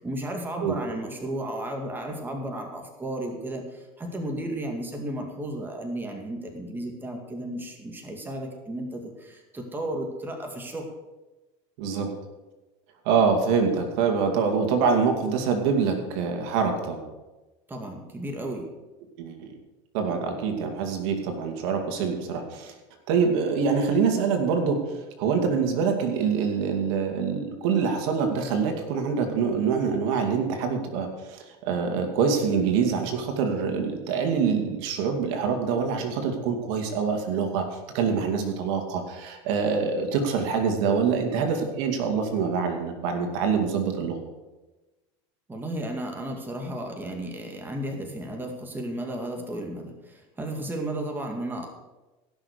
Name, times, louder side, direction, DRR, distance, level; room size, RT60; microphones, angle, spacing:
voice 1, 0.0-10.9 17.7-18.7 45.5-51.7, right 1 dB, 15° right, 2 dB, 2.2 m, -34 dB
voice 2, 11.8-12.1 13.0-17.0 19.2-19.6 19.9-22.7 23.1-24.8 25.2-37.7 37.9-44.2, right 5 dB, 70° right, 4 dB, 2.5 m, -25 dB
17.0 x 6.3 x 6.7 m, 1.1 s
supercardioid pair, 125°, 15 cm